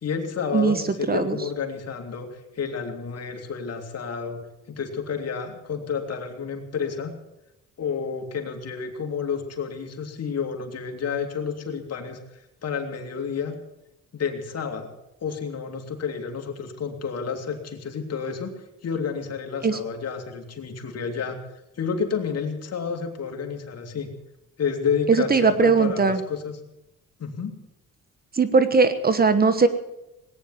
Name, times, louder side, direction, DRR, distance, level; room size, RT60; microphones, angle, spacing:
voice 1, 0.0-4.4 4.7-7.1 7.8-12.2 12.6-13.6 14.1-21.5 21.8-24.1 24.6-26.6 27.2-27.6, left 6 dB, 55° left, 3 dB, 2.6 m, -30 dB
voice 2, 25.1-26.2 28.3-29.7, right 4 dB, 30° right, 12 dB, 1.2 m, -19 dB
18.5 x 9.6 x 7.5 m, 0.91 s
cardioid pair, 90°, 30 cm